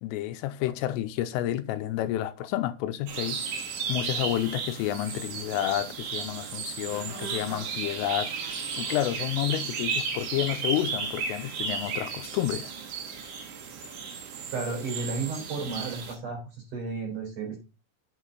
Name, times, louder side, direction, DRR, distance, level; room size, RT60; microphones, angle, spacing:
voice 1, 0.0-3.4 3.9-12.7, left 13 dB, 90° left, 3.3 m, -30 dB
sound 1, 3.1-16.2, right 5 dB, 70° right, 4.4 m, -34 dB
voice 2, 14.5-17.6, right 4 dB, 40° right, 4.6 m, -33 dB
8.2 x 6.5 x 4.0 m
omnidirectional pair, 5.8 m